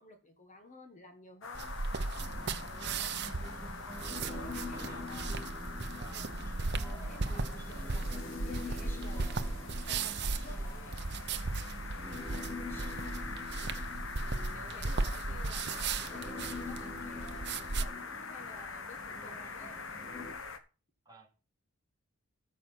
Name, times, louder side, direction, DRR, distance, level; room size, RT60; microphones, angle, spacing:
voice 1, 0.0-1.7 2.6-3.1 4.2-5.3 6.1-6.4 6.8-11.0 14.2-19.8, left 1 dB, 35° left, 5 dB, 1.6 m, -53 dB
sound 1, 1.4-20.6, left 4 dB, 60° left, 1.3 m, -45 dB
sound 2, 1.5-17.8, right 3 dB, 50° right, 0.8 m, -37 dB
Human voice, 2.2-20.3, left 2 dB, 10° left, 1.7 m, -46 dB
voice 2, 4.2-5.5 6.0-6.3 12.4-13.0 21.0-21.3, right 2 dB, 20° right, 0 dB, 2.8 m, -56 dB
14.0 x 6.3 x 5.9 m, 0.34 s
head